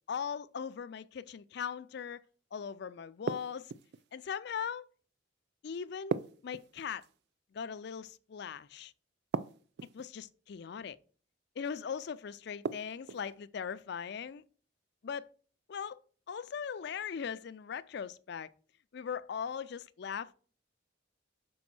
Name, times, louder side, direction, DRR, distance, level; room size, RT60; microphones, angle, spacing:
voice 1, 0.1-2.2 2.5-3.7 4.1-4.8 5.6-6.2 6.4-7.0 7.5-8.9 9.9-11.0 11.6-14.4 15.0-15.3 15.7-16.0 16.3-18.5 18.9-20.3, left 7 dB, 55° left, 0.4 m, -39 dB
sound 1, 3.3-4.0 6.1-7.1 9.3-10.1 12.6-13.3, right 5 dB, 55° right, 0.3 m, -37 dB
6.2 x 4.1 x 6.0 m
head